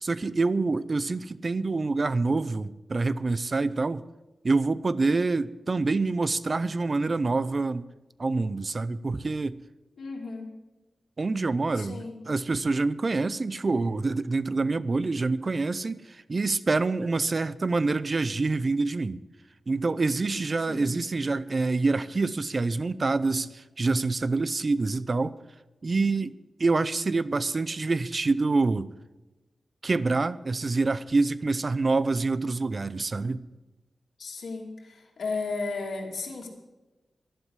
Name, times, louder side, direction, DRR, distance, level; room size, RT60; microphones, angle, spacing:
voice 1, 0.0-4.0 4.4-7.9 8.2-9.6 11.2-12.0 12.3-19.2 19.7-25.4 25.8-28.9 29.8-33.4, right 3 dB, 40° right, 0.6 m, -26 dB
voice 2, 10.0-10.5 11.7-12.2 20.6-21.0 34.2-36.5, left 4 dB, 80° left, 2.8 m, -34 dB
12.0 x 11.5 x 8.1 m
wide cardioid pair, 115°, 0 cm